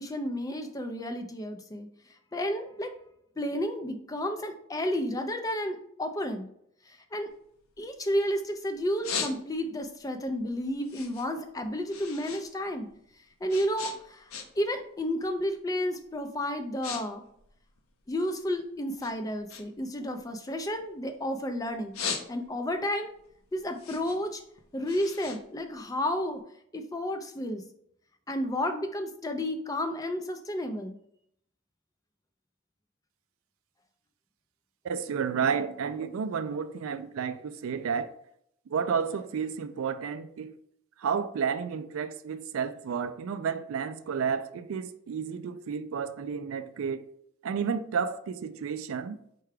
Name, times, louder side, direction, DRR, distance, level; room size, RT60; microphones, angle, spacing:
voice 1, 0.0-1.9 2.3-2.9 3.4-6.5 6.8-7.3 7.8-12.9 13.4-14.3 14.6-17.2 18.1-22.0 22.3-23.1 23.5-24.4 24.7-26.4 26.7-27.6 28.3-31.0, equal, 15° left, 0.3 m, -31 dB
sound 1, 7.3-8.4 8.8-9.8 10.2-12.5 12.7-14.8 15.1-15.4 16.0-16.2 16.5-17.0 17.3-18.5 19.0-21.3 21.7-22.7 23.2-26.3, left 6 dB, 80° left, 0.6 m, -39 dB
voice 2, 34.8-38.1 38.7-40.6 41.0-47.0 47.4-49.2, right 6 dB, 75° right, 0.3 m, -31 dB
4.6 x 2.3 x 4.8 m
head